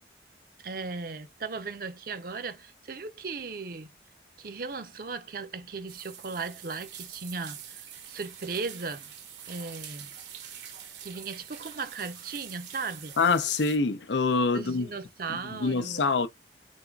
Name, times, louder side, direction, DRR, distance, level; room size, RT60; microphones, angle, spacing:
voice 1, 0.6-3.9 4.4-9.1 9.5-10.1 11.0-13.2 14.5-16.1, right 4 dB, 50° right, 0.6 m, -37 dB
sound 1, 5.9-13.8, right 9 dB, 75° right, 1.0 m, -45 dB
voice 2, 13.2-14.9 15.5-16.3, left 4 dB, 80° left, 0.6 m, -25 dB
3.9 x 3.5 x 2.3 m
head